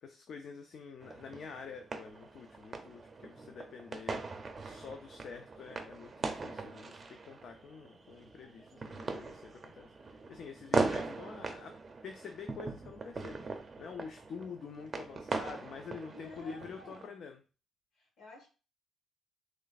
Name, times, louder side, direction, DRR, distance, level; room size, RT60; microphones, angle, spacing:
voice 1, 0.0-4.2 4.6-11.7 12.0-17.4, left 5 dB, 45° left, 5 dB, 0.5 m, -47 dB
sound 1, 1.0-17.0, right 3 dB, 20° right, 0.5 m, -40 dB
voice 2, 16.1-17.2 17.9-18.5, left 1 dB, 60° left, 0 dB, 1.8 m, -52 dB
3.2 x 3.2 x 4.0 m, 0.35 s
cardioid pair, 175°, 0 cm